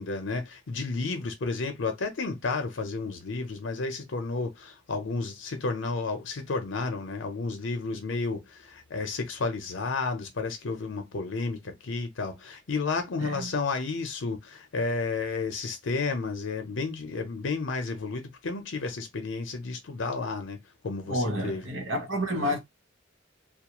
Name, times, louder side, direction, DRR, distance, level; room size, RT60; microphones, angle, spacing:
voice 1, 0.0-20.6 20.8-21.7, left 3 dB, 80° left, 0.6 m, -32 dB
voice 2, 13.2-13.5 21.1-22.6, equal, 80° right, 0.9 m, -29 dB
2.3 x 2.0 x 2.9 m
head